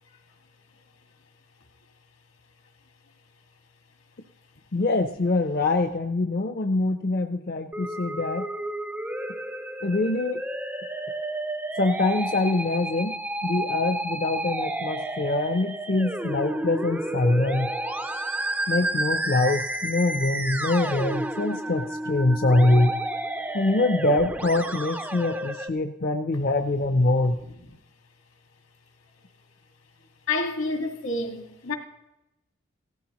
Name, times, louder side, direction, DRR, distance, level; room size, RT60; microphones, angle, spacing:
voice 1, 4.7-8.4 9.8-10.4 11.8-13.1 13.4-17.7 18.7-22.9 23.5-27.4, left 2 dB, 45° left, 0.6 m, -24 dB
Musical instrument, 7.7-25.7, right 1 dB, 10° right, 0.4 m, -31 dB
voice 2, 30.3-31.7, left 3 dB, 80° left, 1.8 m, -29 dB
17.5 x 14.5 x 3.0 m
head